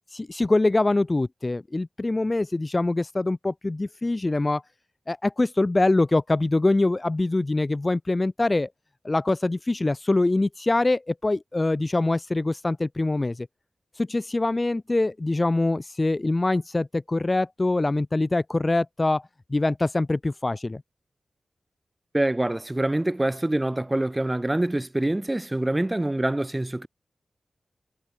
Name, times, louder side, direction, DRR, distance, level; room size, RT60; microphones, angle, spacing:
voice 1, 0.1-4.6 5.1-8.7 9.0-13.5 14.0-19.2 19.5-20.8, left 2 dB, 35° left, 1.7 m, -24 dB
voice 2, 22.1-26.9, right 1 dB, 20° right, 3.2 m, -25 dB
cardioid pair, 50°, 0 cm